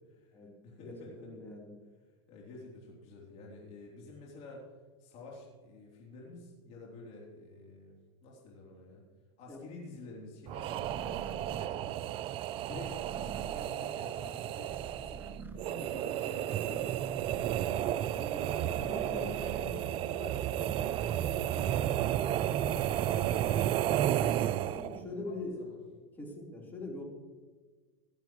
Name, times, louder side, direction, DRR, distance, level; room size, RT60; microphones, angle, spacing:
voice 1, 0.0-1.3 2.3-4.7 5.0-7.9 8.2-9.0 9.4-12.0 12.7-17.2 18.5-23.5 25.0-25.8 26.6-26.8, left 3 dB, 50° left, -3 dB, 3.3 m, -49 dB
voice 2, 0.8-1.7 9.5-9.6 17.7-18.5 18.9-19.3 24.6-25.6 26.2-27.0, left 2 dB, 15° left, -2 dB, 3.8 m, -43 dB
sound 1, 10.5-25.0, right 12 dB, 40° right, 0.4 m, -32 dB
sound 2, 10.7-16.3 16.6-22.1 22.4-24.3, right 4 dB, 15° right, 0.9 m, -47 dB
16.5 x 11.5 x 3.1 m, 1.4 s
supercardioid pair, 115°, 14 cm